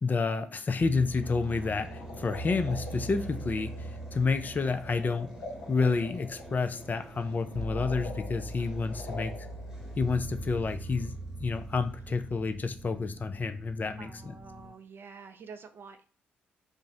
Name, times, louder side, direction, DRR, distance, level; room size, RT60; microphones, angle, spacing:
voice 1, 0.0-5.3 5.7-9.3 10.0-11.1 11.4-14.3, left 4 dB, 35° left, 9 dB, 0.4 m, -29 dB
sound 1, 0.8-14.7, right 1 dB, 70° right, 0.8 m, -42 dB
sound 2, 1.0-13.9, right 1 dB, 5° right, 1.0 m, -54 dB
sound 3, 1.2-10.7, left 2 dB, 70° left, 0.8 m, -46 dB
voice 2, 14.0-16.1, right 5 dB, 45° right, 9 dB, 0.4 m, -48 dB
2.5 x 2.0 x 3.7 m, 0.39 s
hypercardioid pair, 40°, 5 cm